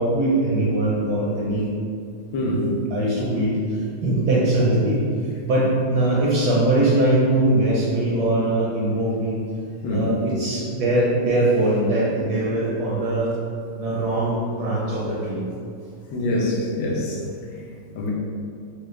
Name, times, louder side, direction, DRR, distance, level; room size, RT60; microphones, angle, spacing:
voice 1, 0.0-1.7 2.5-2.6 2.9-5.1 5.5-9.4 9.9-13.3 13.8-15.4, right 1 dB, 70° right, -6 dB, 1.0 m, -21 dB
voice 2, 2.3-2.7 9.8-10.1 16.1-17.2 17.9-18.1, left 1 dB, 80° left, -2 dB, 1.5 m, -24 dB
4.8 x 2.3 x 3.1 m, 2.4 s
omnidirectional pair, 2.2 m